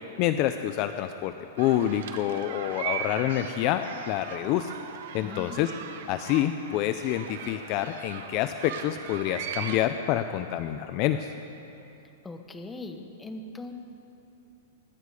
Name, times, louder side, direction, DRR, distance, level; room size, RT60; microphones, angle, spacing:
voice 1, 0.2-4.7 5.1-5.7 6.1-11.3, left 12 dB, 35° left, 9 dB, 0.5 m, -27 dB
afternoon recess Dewson St Public School, 1.6-9.9, right 8 dB, 65° right, 1.2 m, -39 dB
voice 2, 5.1-5.7 12.2-13.7, left 2 dB, 10° left, 5 dB, 1.0 m, -40 dB
24.0 x 11.5 x 4.9 m, 2.9 s
supercardioid pair, 165°, 0 cm